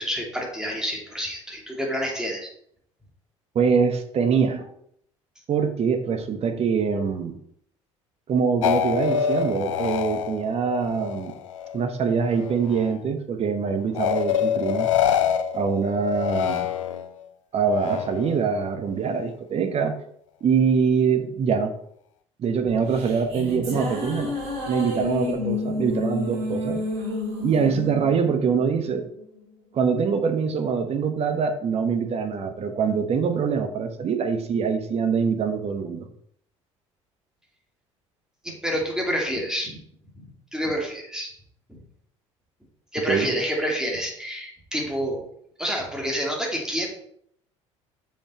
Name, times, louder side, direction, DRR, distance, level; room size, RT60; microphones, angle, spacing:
voice 1, 0.0-2.5 38.4-39.8 40.2-40.3 40.5-41.3 41.7-41.8 42.9-45.2 45.6-46.9, equal, 5° right, -1 dB, 2.7 m, -28 dB
voice 2, 3.5-4.7 5.5-7.4 8.3-11.3 11.7-14.9 15.5-16.7 17.5-19.9 20.4-21.7 22.4-24.3 24.7-26.8 27.4-29.0 29.7-36.1 43.1-43.3, right 6 dB, 40° right, 7 dB, 1.2 m, -24 dB
sound 1, 8.6-11.8 12.1-13.0 13.9-17.2 17.7-18.4, left 9 dB, 75° left, 0.5 m, -26 dB
sound 2, 22.7-29.2, left 2 dB, 65° right, 2.8 m, -30 dB
7.2 x 5.8 x 4.4 m, 0.68 s
figure-of-eight pair, 60°, 16 cm